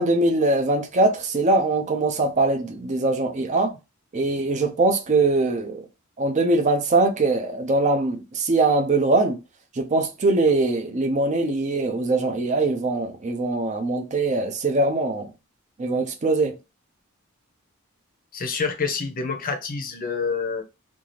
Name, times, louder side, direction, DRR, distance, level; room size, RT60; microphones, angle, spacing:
voice 1, 0.0-3.7 4.1-5.9 6.2-9.4 9.8-15.3 15.8-16.5, right 2 dB, 35° right, 0.5 m, -22 dB
voice 2, 18.3-20.6, left 5 dB, 45° left, 0.6 m, -27 dB
2.6 x 2.4 x 3.1 m
head